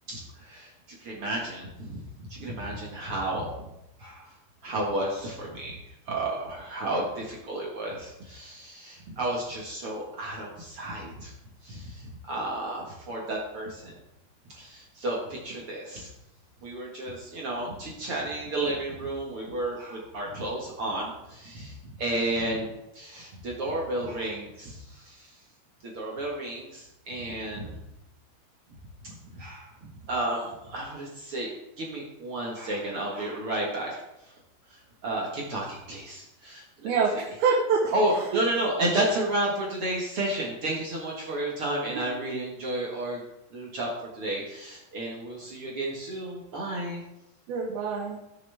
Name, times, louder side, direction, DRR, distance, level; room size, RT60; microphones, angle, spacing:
voice 1, 0.1-0.7 1.0-3.5 4.0-4.3 4.6-5.8 6.1-11.3 11.6-13.9 14.5-16.1 16.6-25.3 25.8-27.8 29.0-34.0 34.7-36.9 37.9-43.2 43.5-47.0, right 1 dB, 55° right, -3 dB, 1.6 m, -32 dB
voice 2, 36.8-38.4 42.0-42.1 47.5-48.2, right 5 dB, 70° right, -2 dB, 2.9 m, -26 dB
17.0 x 6.7 x 3.4 m, 0.91 s
omnidirectional pair, 4.7 m